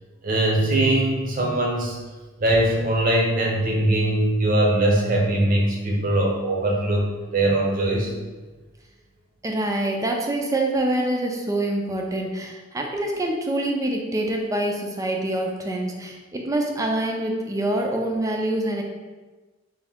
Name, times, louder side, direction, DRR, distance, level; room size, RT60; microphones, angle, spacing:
voice 1, 0.2-2.0 2.4-8.1, right 1 dB, 45° right, -1 dB, 0.7 m, -21 dB
voice 2, 9.4-18.8, right 1 dB, 15° right, 1 dB, 0.4 m, -25 dB
3.6 x 2.6 x 3.4 m, 1.3 s
head